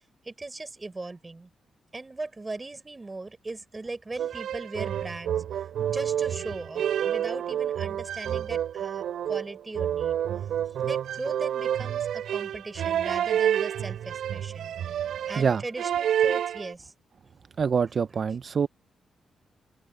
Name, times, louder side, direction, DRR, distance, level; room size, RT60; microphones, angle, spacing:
voice 1, 0.2-1.5 1.9-10.2 10.8-14.7 15.3-16.9, right 3 dB, 25° right, 6.3 m, -38 dB
sound 1, 4.2-16.7, right 10 dB, 80° right, 3.9 m, -29 dB
voice 2, 17.6-18.7, right 6 dB, 55° right, 0.5 m, -25 dB
open air
cardioid pair, 70°, 0 cm